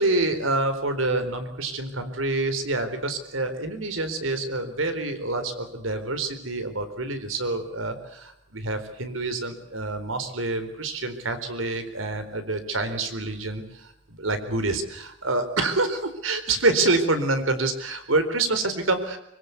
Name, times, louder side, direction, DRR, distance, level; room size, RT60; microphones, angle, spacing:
voice 1, 0.0-19.2, right 2 dB, 85° right, 9 dB, 4.1 m, -27 dB
24.5 x 23.0 x 8.2 m, 0.80 s
head